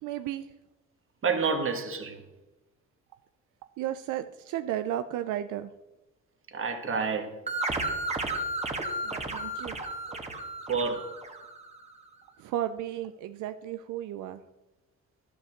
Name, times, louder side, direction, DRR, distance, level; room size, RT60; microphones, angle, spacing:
voice 1, 0.0-0.5 3.8-5.7 9.0-9.8 12.4-14.4, right 12 dB, 85° right, 10 dB, 0.5 m, -34 dB
voice 2, 1.2-2.2 6.5-7.3 10.7-11.1, right 5 dB, 45° right, 5 dB, 1.6 m, -28 dB
sound 1, 7.5-11.8, right 2 dB, 20° right, 1.4 m, -33 dB
12.0 x 5.4 x 6.6 m, 1.0 s
cardioid pair, 90°, 30 cm